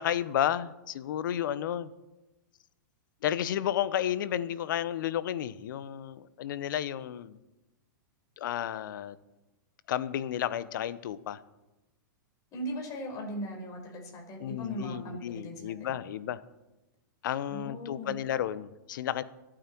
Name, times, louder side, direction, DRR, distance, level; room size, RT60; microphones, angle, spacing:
voice 1, 0.0-1.9 3.2-7.4 8.4-9.2 9.9-11.4 14.4-16.4 17.2-19.2, left 10 dB, 70° left, 16 dB, 0.9 m, -32 dB
voice 2, 12.5-15.9 17.5-18.1, equal, 30° left, 1 dB, 4.9 m, -39 dB
25.5 x 8.9 x 4.6 m, 0.99 s
hypercardioid pair, 125°, 11 cm